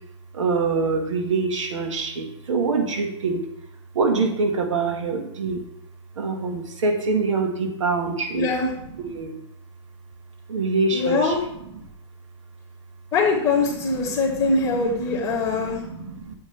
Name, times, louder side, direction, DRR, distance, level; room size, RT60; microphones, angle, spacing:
voice 1, 0.3-3.4 4.0-5.6 6.2-8.5 9.0-9.4 10.5-11.4 11.8-11.9 14.1-14.2 15.1-16.3, right 4 dB, 90° right, 4 dB, 1.6 m, -25 dB
voice 2, 8.3-8.7 10.9-11.4 13.1-15.8, left 3 dB, 20° left, -11 dB, 2.2 m, -22 dB
8.9 x 8.0 x 3.3 m, 0.77 s
hypercardioid pair, 135°, 16 cm